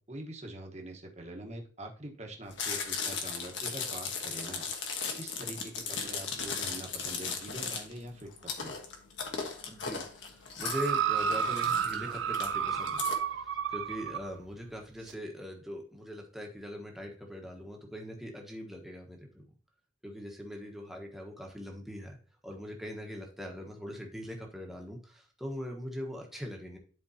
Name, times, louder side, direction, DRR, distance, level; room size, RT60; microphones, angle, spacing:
voice 1, 0.1-4.7 5.2-8.7, right 1 dB, 35° right, 1 dB, 1.2 m, -44 dB
Chewing mastication, 2.5-13.1, left 5 dB, 75° left, 1.3 m, -37 dB
voice 2, 9.7-19.4 20.0-22.2 22.4-26.8, equal, ahead, 0 dB, 1.2 m, -41 dB
sound 1, 10.6-14.3 15.1-15.2, right 7 dB, 80° right, 0.5 m, -31 dB
11.0 x 4.5 x 2.8 m, 0.42 s
head